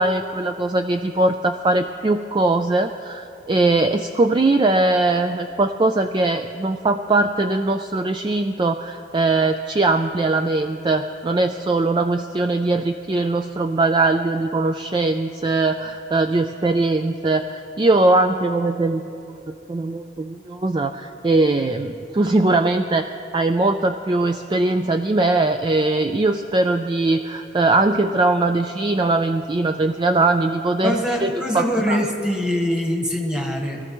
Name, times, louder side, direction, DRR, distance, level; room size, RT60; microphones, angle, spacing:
voice 1, 0.0-31.3 31.5-32.0, right 2 dB, 25° right, 7 dB, 0.3 m, -21 dB
voice 2, 30.8-33.8, equal, 5° right, 1 dB, 1.4 m, -23 dB
24.0 x 14.0 x 3.1 m, 2.7 s
head